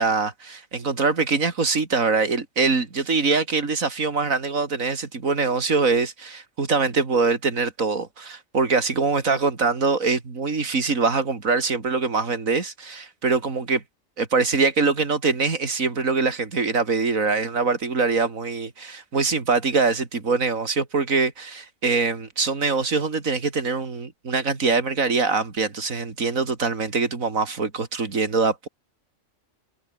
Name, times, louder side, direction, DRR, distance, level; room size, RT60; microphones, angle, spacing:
voice 1, 0.0-13.8 14.2-28.7, right 4 dB, 85° right, 3.2 m, -23 dB
omnidirectional pair, 1.4 m